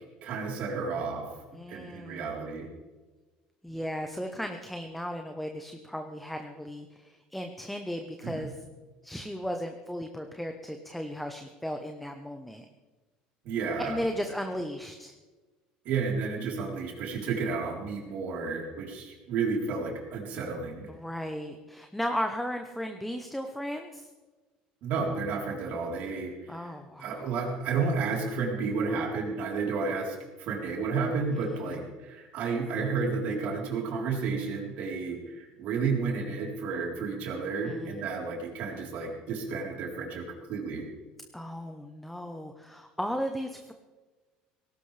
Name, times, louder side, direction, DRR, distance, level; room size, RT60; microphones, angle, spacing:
voice 1, 0.2-1.3 1.7-2.7 8.2-8.5 13.4-14.0 15.8-20.9 24.8-26.7 27.0-40.9, right 4 dB, 65° right, -1 dB, 3.9 m, -31 dB
voice 2, 1.5-2.7 3.6-8.5 9.0-12.7 13.8-15.1 20.9-24.1 26.5-27.4 31.4-31.8 37.7-38.1 41.3-43.7, equal, 5° left, 5 dB, 1.0 m, -36 dB
18.0 x 17.0 x 3.4 m, 1.3 s
cardioid pair, 120°, 3 cm